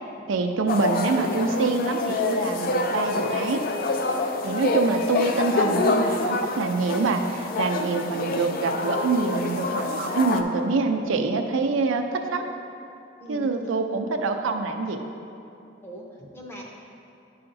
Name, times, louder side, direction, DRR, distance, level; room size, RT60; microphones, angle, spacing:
voice 1, 0.3-3.6 4.4-12.5 13.3-15.0, right 3 dB, 85° right, 5 dB, 0.5 m, -25 dB
sound 1, 0.7-10.4, left 3 dB, 45° left, 0.4 m, -27 dB
voice 2, 13.2-13.5 15.8-16.6, right 1 dB, 10° left, -2 dB, 0.7 m, -41 dB
9.6 x 5.7 x 2.6 m, 2.6 s
head